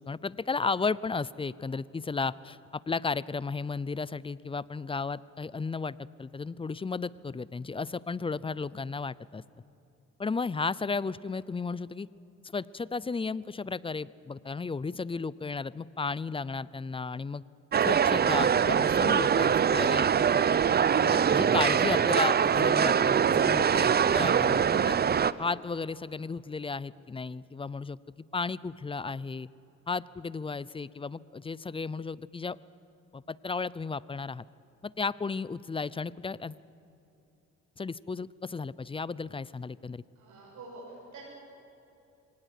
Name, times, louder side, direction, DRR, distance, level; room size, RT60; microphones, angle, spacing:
voice 1, 0.0-9.4 10.2-12.1 12.5-17.4 17.8-20.1 21.0-25.0 25.4-28.0 28.3-29.5 29.9-32.6 33.1-34.4 34.8-36.6 37.8-40.0, left 4 dB, 20° left, 20 dB, 0.5 m, -34 dB
sound 1, 17.7-25.3, right 7 dB, 35° right, 0.6 m, -23 dB
voice 2, 40.2-41.2, right 3 dB, 65° right, -4 dB, 7.0 m, -46 dB
24.0 x 18.5 x 8.3 m, 2.9 s
cardioid pair, 90°, 30 cm